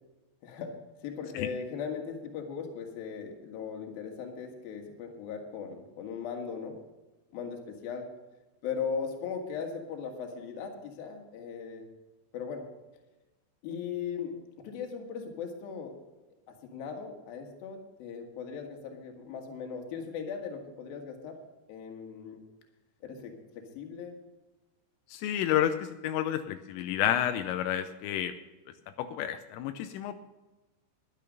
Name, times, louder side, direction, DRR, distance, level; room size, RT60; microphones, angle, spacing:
voice 1, 0.4-6.8 7.3-8.1 8.6-11.8 12.3-12.7 13.6-16.0 16.6-21.4 21.7-22.4 23.0-24.1, left 6 dB, 60° left, 3 dB, 2.9 m, -38 dB
voice 2, 25.1-28.3 29.0-30.1, left 11 dB, 85° left, 8 dB, 3.2 m, -30 dB
12.5 x 11.0 x 5.3 m, 1.1 s
omnidirectional pair, 5.8 m